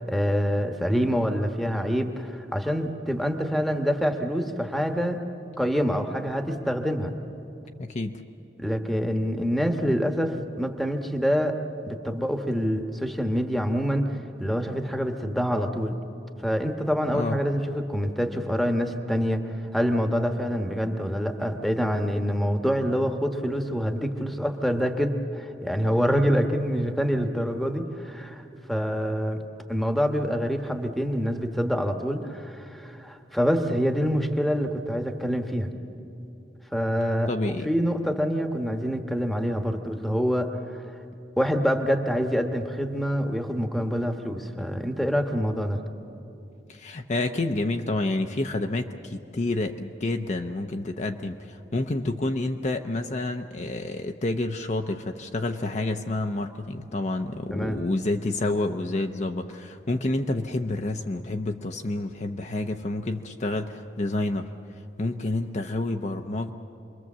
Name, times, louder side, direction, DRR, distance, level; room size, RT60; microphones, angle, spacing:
voice 1, 0.1-5.2 5.6-7.1 8.6-11.6 11.9-16.0 16.4-28.4 28.7-29.4 29.7-35.7 36.7-37.3 37.6-40.8 41.4-45.8 57.5-57.8, equal, ahead, 5 dB, 1.2 m, -26 dB
voice 2, 7.8-8.2 17.1-17.4 37.3-37.7 46.7-64.5 65.0-66.5, left 2 dB, 40° left, 5 dB, 0.7 m, -29 dB
27.5 x 22.0 x 7.4 m, 2.7 s
head